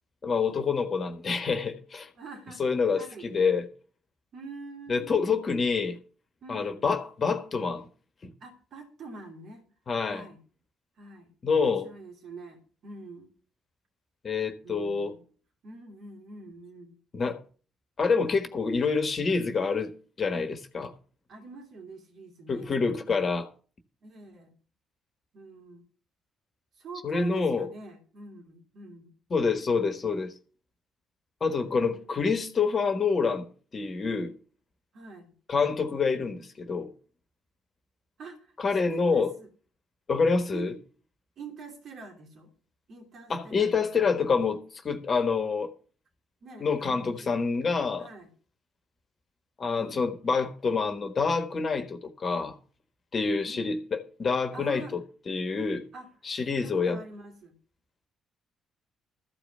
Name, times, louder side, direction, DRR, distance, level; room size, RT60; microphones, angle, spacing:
voice 1, 0.2-2.1 2.6-3.6 4.9-6.0 6.5-7.9 8.2-8.3 9.9-10.2 11.4-11.9 14.2-15.1 17.1-17.4 18.0-19.9 20.2-20.9 22.5-23.5 27.0-27.7 29.3-30.3 31.4-33.5 33.7-34.4 35.5-36.9 38.6-39.3 40.1-40.7 43.3-45.7 46.6-48.1 49.6-52.6 53.1-55.8 56.2-57.0, left 5 dB, 40° left, 1.5 m, -27 dB
voice 2, 2.1-2.6 2.9-3.3 4.3-5.4 6.4-6.9 8.4-9.7 10.0-10.4 11.0-11.3 11.6-13.3 14.6-15.2 15.6-17.0 21.3-22.8 24.0-24.5 25.3-25.8 26.7-29.1 31.6-32.2 34.9-35.3 38.2-38.5 38.9-39.5 40.5-40.7 41.4-42.5 42.9-43.7 44.0-44.1 46.4-47.4 48.0-48.3 49.7-50.0 53.4-53.6 54.5-55.0 55.9-56.1 56.5-57.5, right 3 dB, 55° right, 2.9 m, -45 dB
14.0 x 5.1 x 8.1 m
figure-of-eight pair, 45°, 0 cm